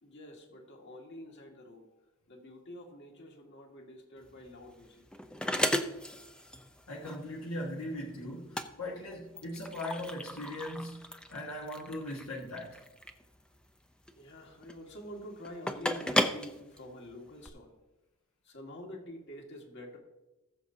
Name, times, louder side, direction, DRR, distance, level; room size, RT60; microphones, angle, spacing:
voice 1, 0.0-1.9 2.3-5.1 14.1-17.8 18.4-20.0, left 1 dB, 55° left, 1.8 m, -47 dB
sound 1, 4.2-17.5, left 1 dB, 5° left, 0.5 m, -36 dB
voice 2, 6.9-12.8, left 1 dB, 70° left, 1.4 m, -39 dB
20.0 x 7.0 x 2.7 m
head